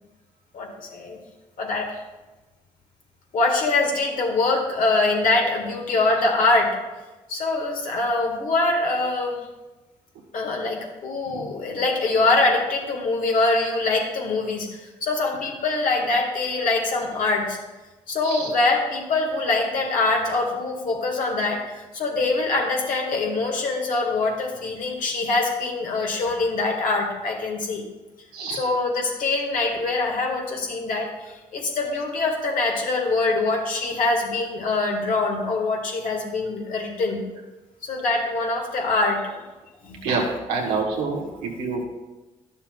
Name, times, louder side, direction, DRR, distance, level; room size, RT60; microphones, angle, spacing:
voice 1, 0.5-1.2 1.6-2.0 3.3-6.8 7.3-9.4 10.3-14.7 15.0-17.6 18.1-27.9 28.6-31.1 31.5-37.2 37.8-39.4 39.8-40.1, left 3 dB, 65° left, 0 dB, 1.8 m, -24 dB
voice 2, 18.2-18.6 28.3-28.6 40.0-40.2 40.5-41.8, right 4 dB, 90° right, -1 dB, 1.4 m, -27 dB
11.5 x 6.8 x 2.4 m, 1.1 s
supercardioid pair, 50°, 15 cm